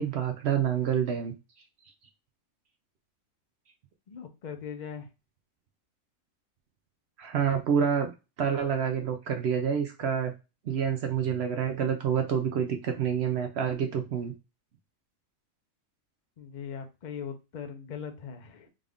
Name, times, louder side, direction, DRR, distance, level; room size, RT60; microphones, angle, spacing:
voice 1, 0.0-1.3 7.2-8.1 8.4-10.3 10.7-14.3, right 7 dB, 65° right, 5 dB, 0.7 m, -28 dB
voice 2, 4.1-5.1 16.4-18.7, left 7 dB, 50° left, 5 dB, 0.5 m, -40 dB
3.7 x 2.4 x 3.5 m, 0.28 s
omnidirectional pair, 1.4 m